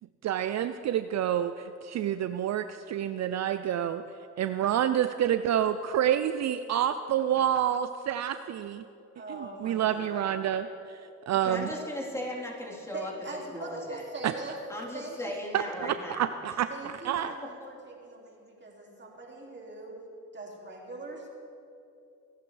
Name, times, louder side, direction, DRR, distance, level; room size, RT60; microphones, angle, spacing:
voice 1, 0.2-4.0 4.4-8.8 9.3-11.0 11.3-11.7 14.2-14.3 15.5-16.7 17.0-17.3, right 10 dB, 60° right, 11 dB, 0.5 m, -28 dB
voice 2, 9.2-10.4 12.9-14.6 14.9-15.4 16.7-20.1 20.3-21.3, right 2 dB, 35° right, 0 dB, 2.6 m, -42 dB
voice 3, 11.4-13.1 13.5-14.0 14.7-16.3 17.6-17.7, left 1 dB, 10° left, -4 dB, 3.7 m, -37 dB
26.0 x 10.5 x 3.3 m, 2.7 s
cardioid pair, 75°, 31 cm